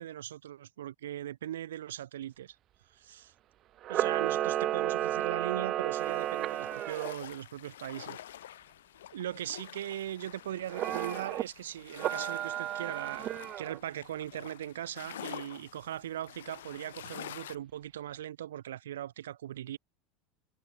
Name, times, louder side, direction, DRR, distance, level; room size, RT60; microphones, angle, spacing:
voice 1, 0.0-2.6 2.9-3.3 3.9-8.6 9.1-19.8, right 11 dB, 70° right, 1.9 m, -39 dB
Camera, 3.8-7.1 10.7-11.4 12.0-13.8, right 13 dB, 40° right, 1.2 m, -32 dB
sound 1, 5.9-17.6, left 12 dB, 70° left, 4.5 m, -48 dB
figure-of-eight pair, 80°, 0 cm